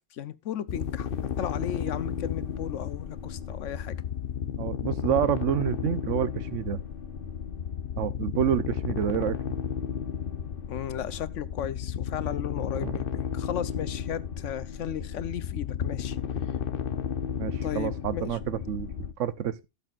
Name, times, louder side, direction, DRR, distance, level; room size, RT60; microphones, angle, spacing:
voice 1, 0.1-1.1 1.4-4.0 10.7-16.2 16.4-16.5 17.6-18.4, left 9 dB, 85° left, 1.1 m, -35 dB
sound 1, 0.7-19.1, left 8 dB, 55° left, 0.9 m, -33 dB
voice 2, 4.6-6.8 8.0-9.4 12.8-13.0 17.4-18.9 19.2-19.6, right 10 dB, 85° right, 1.1 m, -28 dB
16.5 x 7.1 x 2.4 m
omnidirectional pair, 1.2 m